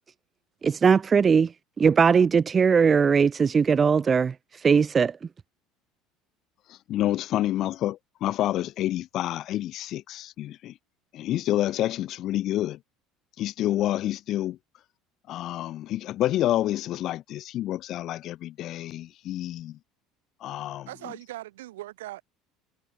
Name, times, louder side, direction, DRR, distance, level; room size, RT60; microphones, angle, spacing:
voice 1, 0.6-1.5 1.8-4.3 4.6-5.1, right 6 dB, 30° right, 0.5 m, -19 dB
voice 2, 6.9-10.7 11.1-12.8 13.4-14.6 15.3-19.8 20.4-20.9, left 13 dB, 55° left, 1.3 m, -28 dB
voice 3, 20.9-22.2, right 16 dB, 80° right, 6.2 m, -39 dB
hypercardioid pair, 75°, 0 cm